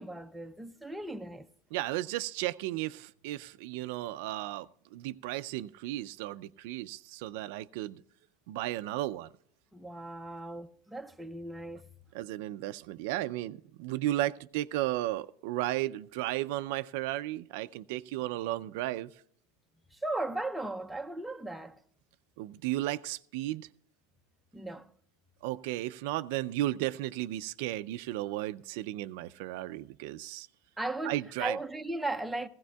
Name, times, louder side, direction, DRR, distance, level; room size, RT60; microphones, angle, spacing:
voice 1, 0.0-1.5 9.7-11.9 19.9-21.8 24.5-24.9 30.8-32.5, right 2 dB, ahead, 0.5 m, -37 dB
voice 2, 1.7-8.0 8.5-9.3 12.1-19.1 22.4-23.7 25.4-30.5 31.0-31.6, right 15 dB, 60° right, 0.4 m, -34 dB
16.5 x 16.0 x 2.3 m
supercardioid pair, 150°, 0 cm